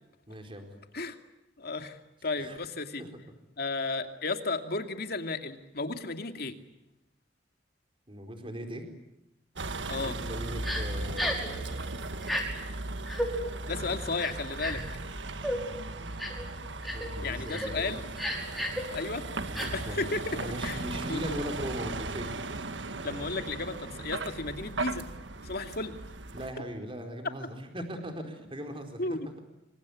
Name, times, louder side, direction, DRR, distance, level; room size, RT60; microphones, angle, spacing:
voice 1, 0.3-0.7 2.4-2.6 3.0-3.2 8.1-8.9 10.0-12.3 16.9-18.0 19.3-22.3 23.0-23.5 26.3-29.2, equal, 30° right, 5 dB, 4.4 m, -40 dB
voice 2, 1.6-3.1 3.6-6.6 9.9-10.2 13.6-14.8 17.2-18.0 18.9-19.3 19.7-20.8 21.1-21.3 23.0-25.1 25.4-26.0 29.0-29.3, left 3 dB, 55° left, 7 dB, 2.6 m, -34 dB
Vehicle, 9.6-26.5, right 2 dB, 70° right, 1.8 m, -37 dB
Crying sobbing, 10.6-10.8 11.2-11.5 12.2-12.4 13.1-13.3 14.2-14.9 15.4-15.6 16.2-16.4 16.8-17.1 17.5-17.7 18.2-18.8 19.5-19.7, equal, ahead, 5.6 m, -32 dB
27.0 x 25.5 x 8.6 m, 0.91 s
head